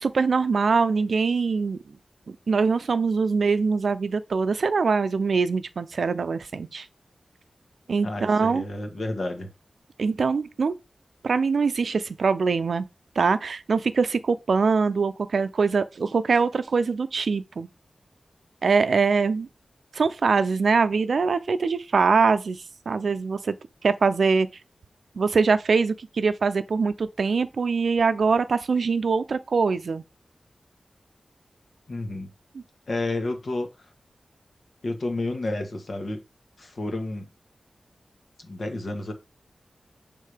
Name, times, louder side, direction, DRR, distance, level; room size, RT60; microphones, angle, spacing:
voice 1, 0.0-1.8 2.3-6.9 7.9-8.6 10.0-10.7 11.2-12.9 13.2-17.7 18.6-19.5 19.9-23.6 23.8-24.5 25.2-30.0, right 4 dB, 80° right, 0.5 m, -23 dB
voice 2, 8.0-9.5 31.9-32.3 32.9-33.7 34.8-36.2 36.6-37.3 38.4-39.1, left 2 dB, 60° left, 1.5 m, -30 dB
6.5 x 3.8 x 5.0 m
wide cardioid pair, 85°, 0 cm